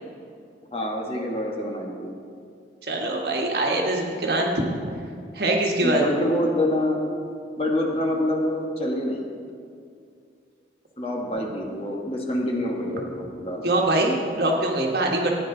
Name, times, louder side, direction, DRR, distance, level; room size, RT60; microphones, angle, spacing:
voice 1, 0.7-2.1 5.8-7.0 7.6-9.3 11.0-13.7, left 1 dB, 30° left, 0 dB, 1.4 m, -26 dB
voice 2, 2.9-4.6 5.3-6.0 13.6-15.3, right 1 dB, 60° right, 0 dB, 1.6 m, -23 dB
15.0 x 9.5 x 3.9 m, 2.3 s
head